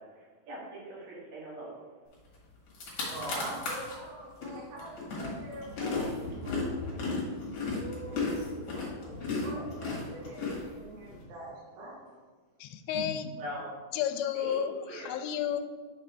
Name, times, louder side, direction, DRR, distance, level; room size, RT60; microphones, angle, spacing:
voice 1, 0.0-1.7 8.1-8.3 13.4-13.7 14.3-15.3, right 1 dB, 65° right, -5 dB, 3.1 m, -42 dB
sound 1, 2.3-2.4 2.7-4.0 4.4-11.2, left 3 dB, 55° left, 2.4 m, -34 dB
voice 2, 3.0-6.8 7.7-12.2 12.9-13.0, right 2 dB, 80° right, -5 dB, 3.0 m, -44 dB
voice 3, 12.6-13.3 13.9-15.6, left 9 dB, 85° left, 8 dB, 2.3 m, -32 dB
6.5 x 5.2 x 3.3 m, 1.4 s
omnidirectional pair, 4.3 m